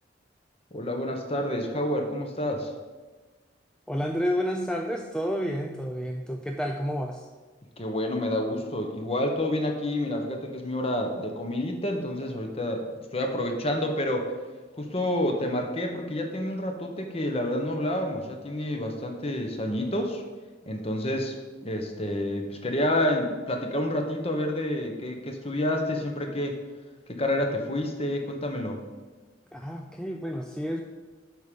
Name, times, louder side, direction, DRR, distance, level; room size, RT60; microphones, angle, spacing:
voice 1, 0.7-2.7 7.8-12.8 13.1-14.3 14.8-20.2 20.7-21.4 21.6-26.6 27.1-28.8, left 1 dB, 30° left, 3 dB, 1.1 m, -29 dB
voice 2, 3.9-7.3 29.5-30.8, equal, 5° left, 2 dB, 0.4 m, -30 dB
7.9 x 5.1 x 6.9 m, 1.3 s
head